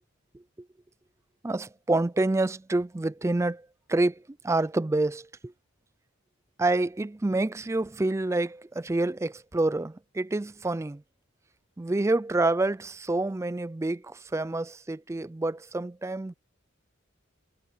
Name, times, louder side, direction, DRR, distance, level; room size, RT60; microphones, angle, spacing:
voice 1, 1.4-5.5 6.6-11.0 11.8-16.3, right 2 dB, 15° right, 0.3 m, -28 dB
head